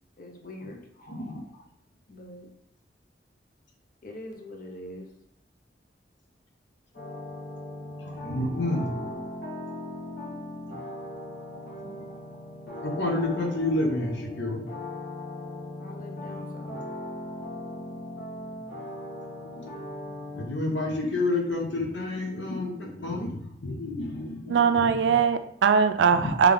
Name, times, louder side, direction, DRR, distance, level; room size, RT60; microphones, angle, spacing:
voice 1, 0.2-0.8 2.1-2.5 4.0-5.1 15.8-16.8, left 1 dB, 50° left, 2 dB, 0.7 m, -42 dB
voice 2, 1.0-1.6 8.0-9.3 11.5-12.0 12.8-14.6 19.6-19.8 20.4-24.9 26.2-26.3, left 2 dB, 85° left, 1 dB, 1.0 m, -30 dB
sound 1, 6.9-20.5, left 1 dB, 65° left, 1.5 m, -38 dB
voice 3, 24.5-26.5, right 6 dB, 80° right, 10 dB, 0.4 m, -21 dB
3.4 x 3.2 x 3.7 m, 0.76 s
head